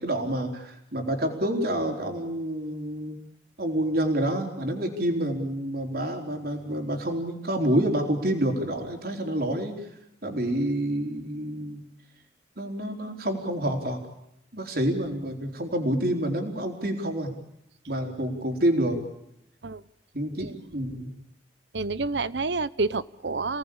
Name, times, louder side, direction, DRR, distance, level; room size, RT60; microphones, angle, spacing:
voice 1, 0.0-3.2 3.6-9.9 10.2-11.8 12.6-14.0 14.5-17.3 17.9-19.0 20.1-21.1, right 1 dB, 55° right, 3 dB, 4.3 m, -28 dB
voice 2, 21.7-23.6, right 3 dB, 80° right, 18 dB, 0.9 m, -28 dB
29.5 x 19.0 x 8.7 m, 0.83 s
head